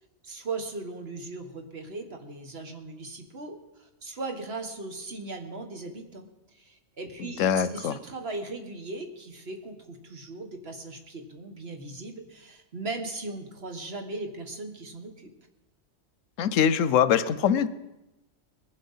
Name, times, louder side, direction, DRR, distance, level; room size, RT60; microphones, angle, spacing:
voice 1, 0.2-6.3 6.6-15.3, right 3 dB, 55° right, 5 dB, 1.7 m, -38 dB
voice 2, 7.2-8.0 16.4-17.7, left 8 dB, 85° left, 15 dB, 1.0 m, -23 dB
20.5 x 7.7 x 5.6 m, 0.98 s
omnidirectional pair, 1.3 m